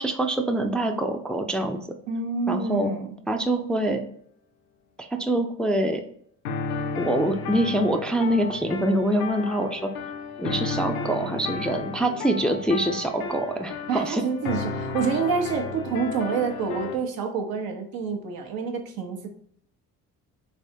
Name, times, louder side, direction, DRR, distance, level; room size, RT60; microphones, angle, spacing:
voice 1, 0.0-1.8 2.5-2.9 3.3-4.0 5.0-6.0 7.0-9.9 10.4-14.2, right 1 dB, 5° left, 5 dB, 0.3 m, -25 dB
voice 2, 2.1-3.1 13.9-19.3, right 5 dB, 75° right, 4 dB, 0.8 m, -27 dB
sound 1, 6.4-17.0, left 4 dB, 85° left, 0.5 m, -33 dB
3.4 x 3.3 x 2.7 m, 0.65 s
cardioid pair, 80°, 36 cm